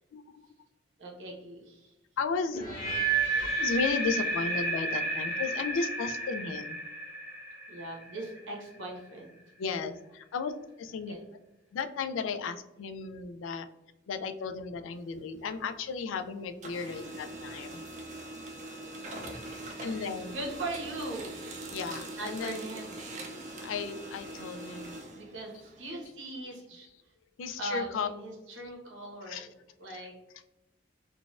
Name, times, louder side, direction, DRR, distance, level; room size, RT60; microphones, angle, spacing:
voice 1, 1.0-1.9 2.5-2.7 3.3-3.5 7.7-9.3 11.1-11.2 19.9-21.4 22.2-23.1 25.1-26.9 27.6-29.4 29.8-30.1, right 2 dB, 85° right, -2 dB, 1.1 m, -40 dB
voice 2, 2.2-2.6 3.6-6.8 9.6-10.5 10.8-11.1 11.7-13.7 14.1-17.8 19.8-20.4 21.7-22.7 23.6-25.0 26.4-26.5 27.4-28.1 29.3-29.5 29.9-30.1, left 5 dB, 90° left, 8 dB, 0.3 m, -34 dB
sound 1, 2.6-8.6, right 3 dB, 40° left, 0.9 m, -32 dB
Printer, 14.9-16.2 16.5-26.0, right 1 dB, 35° right, 0.4 m, -42 dB
3.8 x 2.3 x 2.4 m, 0.98 s
head